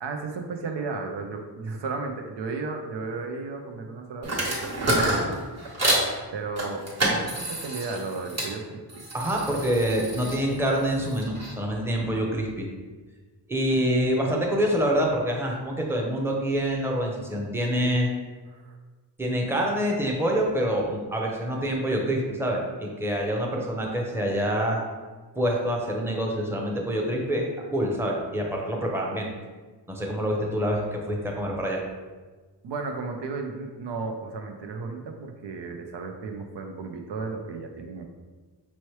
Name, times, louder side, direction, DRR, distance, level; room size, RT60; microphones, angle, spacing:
voice 1, 0.0-5.4 6.3-6.8 7.1-9.0 14.2-14.6 18.5-18.8 32.6-38.0, right 4 dB, 90° right, 4 dB, 0.6 m, -34 dB
sound 1, 4.2-6.1 6.6-8.5 8.9-11.5, right 1 dB, 40° right, 1.3 m, -28 dB
voice 2, 9.1-12.7 13.5-18.1 19.2-24.8 25.4-29.3 29.9-31.8, equal, 5° right, -1 dB, 0.7 m, -26 dB
5.6 x 3.0 x 3.1 m, 1.3 s
wide cardioid pair, 115°, 41 cm